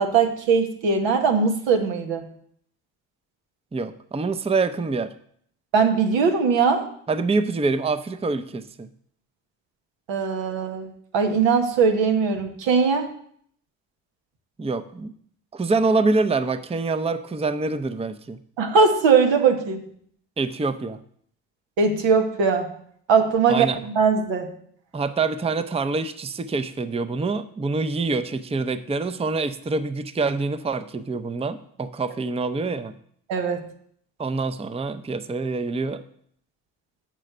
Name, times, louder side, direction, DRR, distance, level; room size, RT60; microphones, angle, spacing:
voice 1, 0.0-2.2 5.7-6.9 10.1-13.1 18.6-19.8 21.8-22.7 23.1-24.5 33.3-33.6, right 5 dB, 85° right, 5 dB, 1.3 m, -20 dB
voice 2, 3.7-5.1 7.1-8.9 14.6-15.1 15.5-18.4 20.4-21.0 23.5-23.8 24.9-32.9 34.2-36.0, right 3 dB, 15° right, 12 dB, 0.5 m, -25 dB
7.6 x 4.9 x 6.6 m, 0.63 s
supercardioid pair, 55°, 44 cm